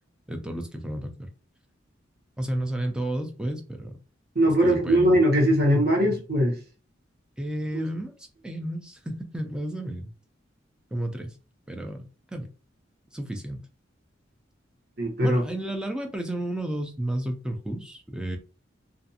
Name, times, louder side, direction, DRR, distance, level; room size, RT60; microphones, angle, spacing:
voice 1, 0.3-1.3 2.4-4.0 4.6-5.2 7.4-10.1 10.9-11.4 11.7-12.5 13.1-13.6 15.2-18.4, right 1 dB, 5° right, 0.3 m, -32 dB
voice 2, 4.3-6.6 7.7-7.8 15.0-15.4, equal, 50° right, 1.0 m, -21 dB
2.4 x 2.4 x 2.7 m
head